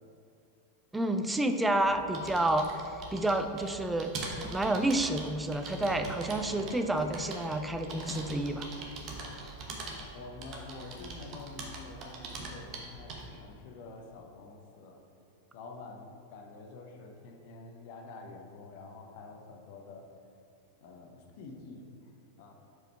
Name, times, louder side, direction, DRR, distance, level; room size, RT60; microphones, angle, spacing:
voice 1, 0.9-2.7 3.1-8.7, right 1 dB, 10° right, 7 dB, 0.4 m, -29 dB
sound 1, 1.8-13.4, right 2 dB, 35° right, 1.0 m, -43 dB
sound 2, 5.8-11.4, right 2 dB, 90° right, 0.3 m, -48 dB
voice 2, 10.1-15.0 15.5-20.1 20.8-22.1 22.4-22.5, left 3 dB, 50° left, 2 dB, 0.8 m, -47 dB
5.0 x 4.8 x 4.4 m, 2.6 s
figure-of-eight pair, 90°, 0 cm